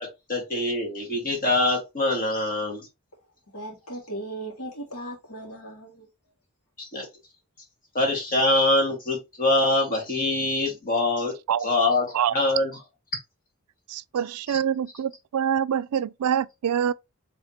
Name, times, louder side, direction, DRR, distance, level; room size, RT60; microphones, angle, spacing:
voice 1, 0.3-2.9 6.8-7.1 7.9-11.3 11.6-12.7 14.5-14.6, left 2 dB, 40° left, 2.1 m, -24 dB
voice 2, 3.5-6.1, right 1 dB, 75° left, 2.1 m, -37 dB
voice 3, 13.9-16.9, right 8 dB, 80° right, 0.3 m, -25 dB
5.0 x 3.4 x 2.9 m
head